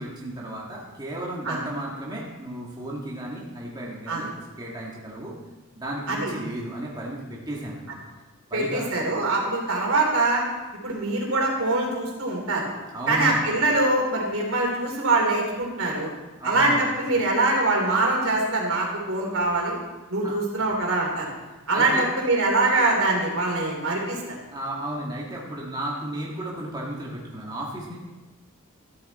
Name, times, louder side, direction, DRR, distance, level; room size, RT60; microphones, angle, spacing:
voice 1, 0.0-4.3 4.6-5.3 5.7-8.0 8.5-8.9 12.9-13.4 16.4-16.8 20.2-20.3 21.7-22.1 24.5-28.0, right 1 dB, 20° right, -4 dB, 2.0 m, -34 dB
voice 2, 8.5-10.4 10.8-12.7 13.1-16.1 16.4-19.8 20.1-21.3 21.7-24.4, right 2 dB, 70° right, -1 dB, 3.5 m, -23 dB
14.0 x 10.0 x 4.2 m, 1.2 s
head